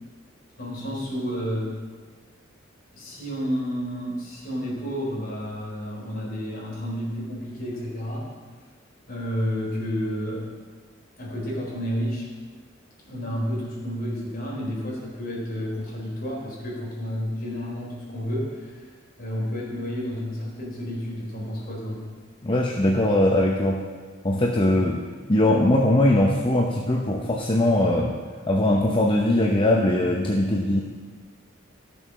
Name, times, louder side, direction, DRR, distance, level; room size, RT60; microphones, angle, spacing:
voice 1, 0.6-1.8 2.9-8.2 9.1-10.5 11.2-12.3 13.1-18.8 19.2-22.0, equal, 50° left, -4 dB, 4.1 m, -30 dB
voice 2, 22.4-23.9 24.2-25.0 25.3-28.1 28.5-30.8, left 1 dB, 25° left, 0 dB, 0.8 m, -21 dB
13.0 x 7.0 x 6.1 m, 1.5 s
head